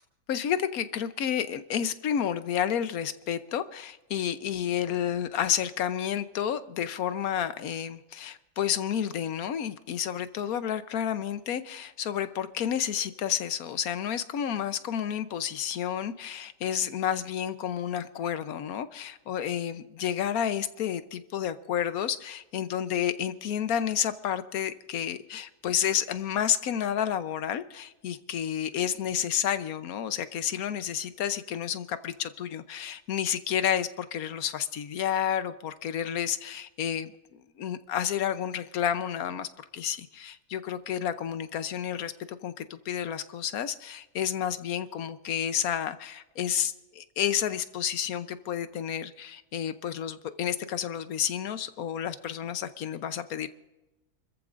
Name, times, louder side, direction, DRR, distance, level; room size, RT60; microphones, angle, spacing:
voice 1, 0.3-37.1 37.6-53.5, left 9 dB, 75° left, 11 dB, 1.2 m, -30 dB
29.0 x 14.0 x 2.5 m, 1.0 s
omnidirectional pair, 1.6 m